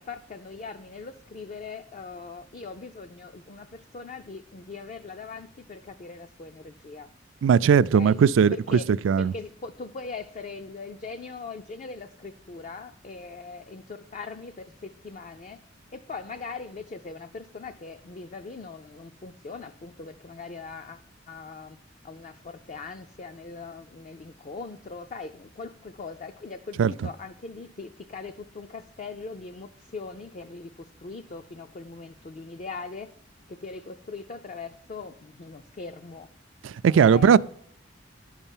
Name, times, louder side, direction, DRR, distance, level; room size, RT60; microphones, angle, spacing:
voice 1, 0.0-7.1 7.9-8.2 8.5-8.9 9.2-15.7 15.9-21.8 22.0-33.1 33.5-36.3 36.9-37.4, left 4 dB, 40° left, 0.4 m, -40 dB
voice 2, 7.4-8.8 9.0-9.3 26.8-26.9 36.6-37.4, right 7 dB, 70° right, 0.3 m, -18 dB
11.5 x 5.6 x 7.2 m
head